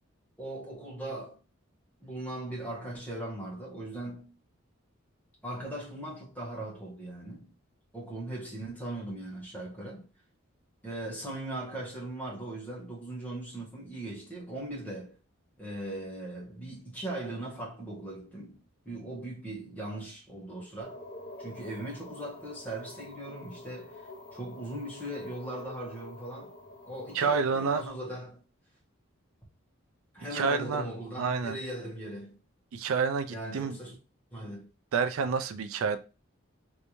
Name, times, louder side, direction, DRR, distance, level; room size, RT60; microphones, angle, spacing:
voice 1, 0.4-1.4 2.0-4.3 5.4-7.5 7.9-10.0 10.8-15.2 15.6-21.0 21.4-26.6 26.9-28.4 30.1-32.4 33.3-34.0 34.3-34.7, right 1 dB, 5° left, 1.2 m, -39 dB
sound 1, 20.8-27.9, left 1 dB, 40° left, 0.7 m, -48 dB
voice 2, 27.1-27.8 30.3-30.9 31.2-31.6 32.7-33.8 34.9-36.0, right 5 dB, 85° right, 0.4 m, -28 dB
3.2 x 2.7 x 2.9 m
head